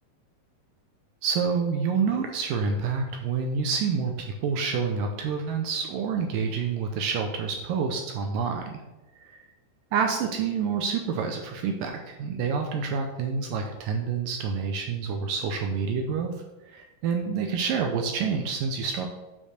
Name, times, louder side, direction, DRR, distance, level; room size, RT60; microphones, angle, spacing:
voice 1, 1.2-8.8 9.2-9.4 9.9-16.3 16.6-19.1, right 5 dB, 75° right, 4 dB, 2.0 m, -28 dB
8.3 x 5.5 x 6.5 m, 1.0 s
omnidirectional pair, 4.8 m